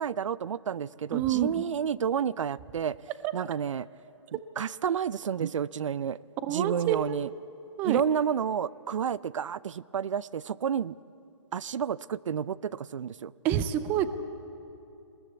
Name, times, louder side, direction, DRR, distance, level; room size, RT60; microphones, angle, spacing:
voice 1, 0.0-3.0 3.3-3.9 4.3-6.2 6.5-7.3 7.8-11.0 11.5-13.3, right 8 dB, 80° right, 21 dB, 0.5 m, -30 dB
voice 2, 1.1-1.5 3.2-3.3 6.4-7.3 7.8-8.0 13.4-14.1, right 11 dB, 10° right, 13 dB, 0.4 m, -27 dB
20.5 x 19.0 x 8.4 m, 2.9 s
hypercardioid pair, 160°, 16 cm